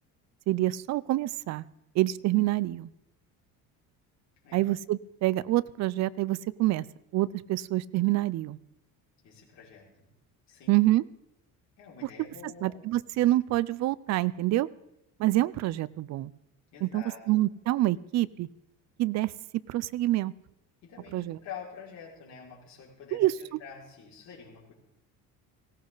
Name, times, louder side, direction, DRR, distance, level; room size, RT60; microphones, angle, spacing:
voice 1, 0.5-1.6 1.9-2.9 4.5-6.9 7.1-8.6 10.7-11.0 12.6-14.7 15.2-16.3 16.8-18.5 19.0-19.3 19.7-20.3 21.1-21.4 23.1-23.3, right 16 dB, 50° right, 18 dB, 0.6 m, -26 dB
voice 2, 9.2-10.1 10.5-10.7 11.8-12.8 16.7-17.2 20.8-24.7, left 7 dB, 55° left, -4 dB, 5.7 m, -47 dB
19.0 x 17.0 x 4.0 m, 0.84 s
cardioid pair, 145°, 34 cm